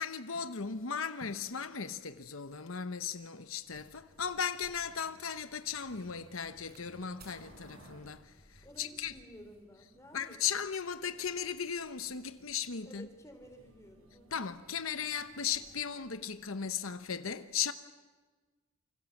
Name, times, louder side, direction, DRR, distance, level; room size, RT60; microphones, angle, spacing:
voice 1, 0.0-9.1 10.1-13.1 14.3-17.7, left 7 dB, 80° left, 1.0 m, -37 dB
sound 1, 3.6-15.8, right 1 dB, 85° right, 6.1 m, -61 dB
sound 2, 4.0-6.9 7.2-7.4 8.3-8.7, right 4 dB, 50° right, 6.2 m, -63 dB
voice 2, 8.6-10.5 12.8-14.5, equal, 15° left, 3.5 m, -53 dB
28.5 x 25.5 x 7.2 m
head